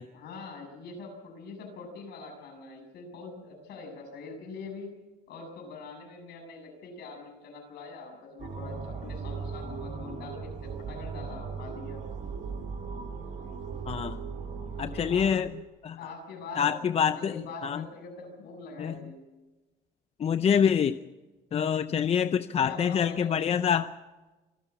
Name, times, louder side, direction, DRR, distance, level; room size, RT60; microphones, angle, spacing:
voice 1, 0.1-5.0 5.3-12.0 14.8-15.3 16.0-19.3 21.9-22.0 22.6-23.5, left 3 dB, 75° left, 3 dB, 7.3 m, -44 dB
sound 1, 8.4-15.4, right 5 dB, 50° right, 4.2 m, -38 dB
sound 2, 8.6-15.6, right 12 dB, 90° right, 2.2 m, -47 dB
voice 2, 13.9-14.2 14.8-15.6 15.8-16.0 16.5-17.8 18.8-19.0 20.2-21.0 21.5-23.9, left 7 dB, 35° left, 11 dB, 0.6 m, -26 dB
25.5 x 13.0 x 8.4 m, 1.1 s
cardioid pair, 110°, 17 cm